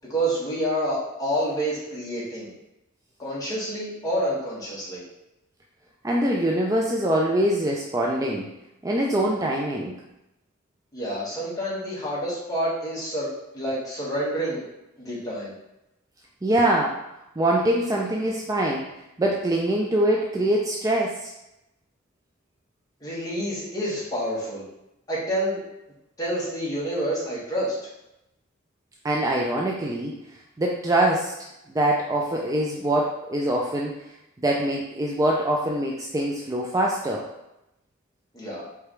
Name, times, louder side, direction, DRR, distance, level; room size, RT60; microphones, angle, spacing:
voice 1, 0.1-2.5 3.2-5.0 10.9-13.3 13.5-14.6 15.0-15.5 23.0-24.7 25.1-25.6 26.2-27.7 38.3-38.6, right 1 dB, 20° left, -7 dB, 1.6 m, -28 dB
voice 2, 6.0-8.5 8.8-9.9 16.4-17.0 17.4-18.9 19.2-21.3 29.0-30.1 30.6-31.3 31.7-34.0 34.4-37.2, right 1 dB, 15° right, -2 dB, 0.4 m, -23 dB
4.9 x 3.4 x 3.1 m, 0.90 s
head